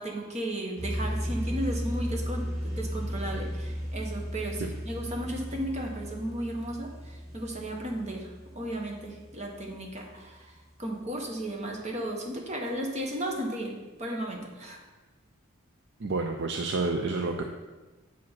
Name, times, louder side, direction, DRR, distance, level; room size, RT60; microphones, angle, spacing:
voice 1, 0.0-8.3 8.5-14.8, right 1 dB, 35° right, 0 dB, 1.3 m, -35 dB
sound 1, 0.7-10.2, equal, 85° right, 2.2 m, -35 dB
voice 2, 16.0-17.4, right 3 dB, 55° right, 4 dB, 0.5 m, -29 dB
8.3 x 5.1 x 5.8 m, 1.2 s
head